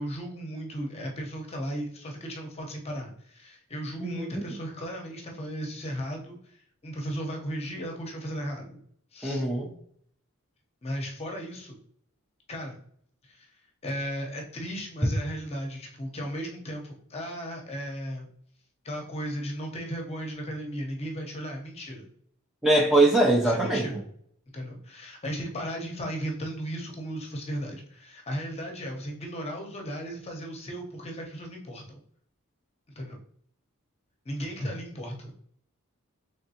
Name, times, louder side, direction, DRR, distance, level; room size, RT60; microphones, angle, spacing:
voice 1, 0.0-8.8 9.1-9.4 10.8-11.8 12.5-12.8 13.2-13.5 13.8-18.3 18.8-22.0 23.4-24.0 24.5-32.0 33.0-33.2 34.2-35.3, equal, 30° left, 1 dB, 0.8 m, -36 dB
voice 2, 4.0-4.4 9.2-9.7 22.6-23.8, right 2 dB, ahead, -3 dB, 0.4 m, -22 dB
3.5 x 3.4 x 2.7 m, 0.64 s
head